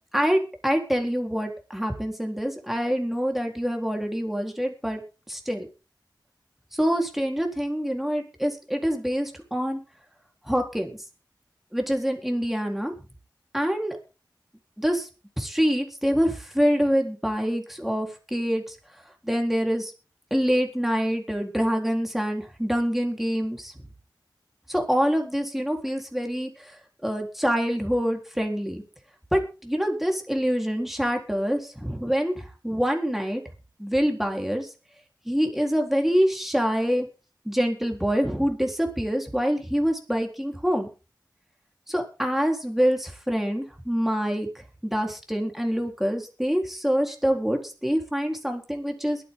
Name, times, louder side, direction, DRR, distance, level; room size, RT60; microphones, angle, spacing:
voice 1, 0.1-5.0 5.3-5.7 6.7-9.8 10.5-11.0 11.7-12.9 13.5-14.0 14.8-15.1 15.4-18.8 19.2-19.9 20.3-23.7 24.7-26.8 27.0-28.8 29.3-33.4 33.8-34.7 35.3-37.1 37.5-40.9 41.9-44.5 44.8-49.2, equal, 5° right, 2 dB, 3.9 m, -25 dB
22.0 x 9.5 x 3.8 m, 0.32 s
wide cardioid pair, 70°, 8 cm